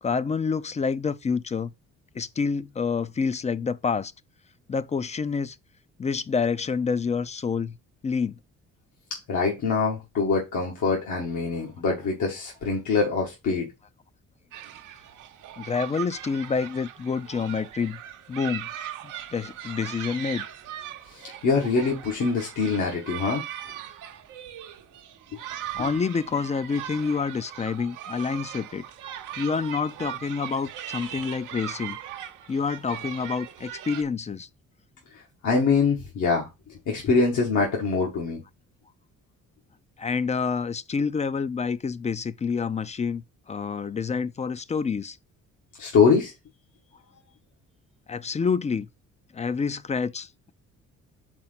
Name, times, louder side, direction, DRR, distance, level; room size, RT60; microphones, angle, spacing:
voice 1, 0.0-1.7 2.1-4.1 4.7-5.6 6.0-7.8 8.0-8.4 10.6-10.7 15.6-18.0 18.3-18.7 19.0-20.5 25.7-28.8 29.4-32.0 32.5-34.5 40.0-45.2 48.1-48.9 49.3-50.5, left 5 dB, 25° left, 0.4 m, -28 dB
voice 2, 9.3-13.7 21.1-23.4 35.1-36.5 36.8-38.4 45.8-46.3, left 4 dB, 75° left, 1.7 m, -24 dB
sound 1, 14.5-34.0, right 11 dB, 90° right, 0.8 m, -39 dB
4.5 x 4.0 x 5.7 m
cardioid pair, 90°, 30 cm